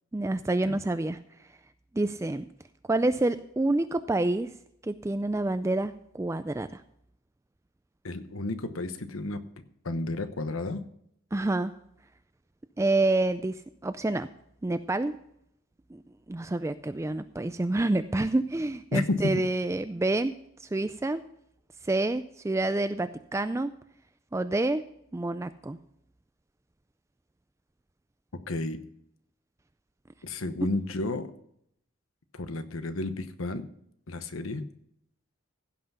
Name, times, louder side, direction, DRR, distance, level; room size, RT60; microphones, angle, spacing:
voice 1, 0.1-1.2 1.9-2.5 2.9-4.5 4.8-6.8 11.3-11.7 12.8-14.3 14.6-15.2 15.9-16.0 16.3-21.2 21.8-23.7 24.3-24.9 25.1-25.8, right 2 dB, 15° right, 11 dB, 0.3 m, -28 dB
voice 2, 8.0-9.4 9.8-10.9 18.9-19.3 28.5-28.8 30.2-31.3 32.3-33.7 34.1-34.7, left 2 dB, 80° left, 10 dB, 1.0 m, -32 dB
16.0 x 5.9 x 5.5 m, 0.72 s
head